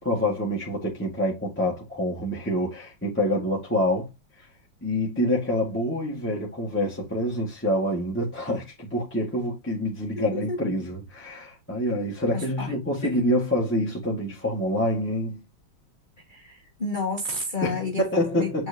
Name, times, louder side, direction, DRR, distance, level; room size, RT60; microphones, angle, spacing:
voice 1, 0.0-4.1 4.8-15.4 17.6-18.7, left 1 dB, 5° left, 1.7 m, -26 dB
voice 2, 10.1-10.6 12.3-12.7 13.0-13.2 16.3-18.0 18.3-18.7, left 3 dB, 30° left, 1.2 m, -31 dB
7.9 x 4.4 x 2.9 m
omnidirectional pair, 2.3 m